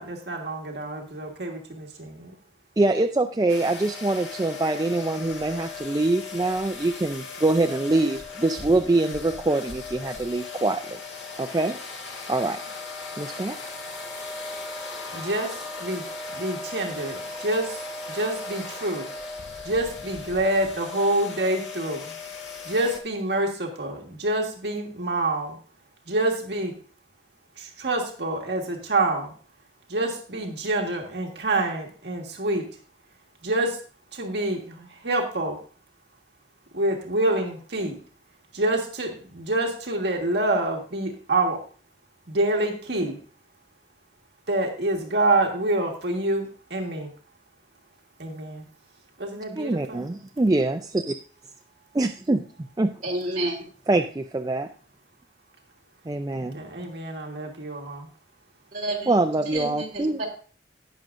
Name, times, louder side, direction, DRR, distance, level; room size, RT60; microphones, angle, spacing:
voice 1, 0.0-2.3 15.1-16.0 16.3-17.8 18.1-19.1 19.6-22.1 22.6-25.6 26.1-26.7 27.6-29.3 29.9-32.6 33.4-33.8 34.1-35.6 36.7-38.0 38.5-41.6 42.3-43.2 44.5-47.1 48.2-48.6 49.2-50.0 56.4-58.1, right 2 dB, 70° right, 1 dB, 1.6 m, -27 dB
voice 2, 2.8-11.0 11.4-11.8 12.3-12.6 13.2-13.6 49.6-51.2 51.9-52.5 52.8-52.9 53.9-54.7 56.1-56.6 59.1-60.2, right 2 dB, 20° right, 6 dB, 0.4 m, -24 dB
sound 1, 3.5-23.0, left 4 dB, 90° left, 1.9 m, -37 dB
voice 3, 53.0-53.6 58.7-59.2 59.5-60.3, right 1 dB, 45° right, -2 dB, 2.9 m, -29 dB
18.0 x 6.2 x 2.5 m, 0.41 s
head